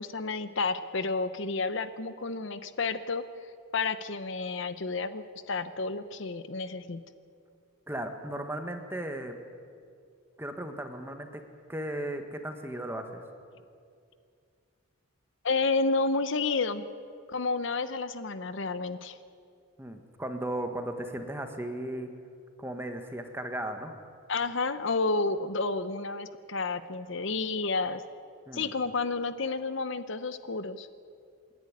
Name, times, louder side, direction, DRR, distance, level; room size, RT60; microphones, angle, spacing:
voice 1, 0.0-3.2 3.7-7.0 15.4-16.9 17.3-19.2 24.3-28.0 28.5-30.9, left 3 dB, 60° left, 12 dB, 0.8 m, -30 dB
voice 2, 7.9-9.3 10.4-11.4 11.7-13.2 19.8-22.1 22.6-23.9 28.5-28.7, right 1 dB, 10° right, 6 dB, 1.4 m, -36 dB
27.0 x 11.0 x 9.7 m, 2.3 s
head